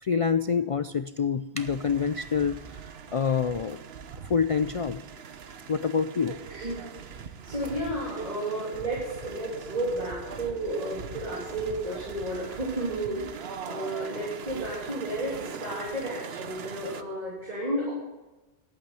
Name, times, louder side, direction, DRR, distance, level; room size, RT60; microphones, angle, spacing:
voice 1, 0.0-3.8 4.2-5.0 5.7-6.4, left 6 dB, 60° left, 11 dB, 0.3 m, -27 dB
sound 1, 1.6-17.0, right 7 dB, 70° right, 1.0 m, -41 dB
voice 2, 6.5-17.9, right 1 dB, 40° right, -6 dB, 3.3 m, -32 dB
11.5 x 8.5 x 7.6 m, 1.1 s
omnidirectional pair, 1.1 m